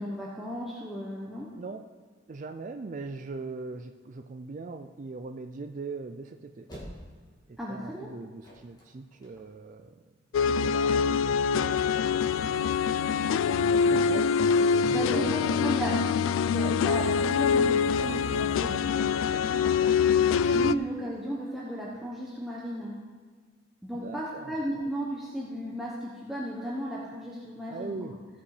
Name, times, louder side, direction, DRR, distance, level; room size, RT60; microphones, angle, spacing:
voice 1, 0.0-1.5 7.6-8.1 13.9-14.3 14.9-16.0 16.5-23.0 23.8-28.2, equal, ahead, -5 dB, 1.0 m, -35 dB
voice 2, 1.6-1.9 2.3-6.7 7.5-10.1 10.4-12.6 13.9-14.3 14.7-15.7 20.5-20.7 23.9-24.8 27.7-28.1, right 3 dB, 40° right, 6 dB, 0.4 m, -40 dB
sound 1, 5.0-10.1, equal, 20° left, 2.3 m, -48 dB
sound 2, 10.3-20.8, left 6 dB, 85° left, 0.3 m, -25 dB
15.0 x 5.4 x 4.9 m, 1.5 s
head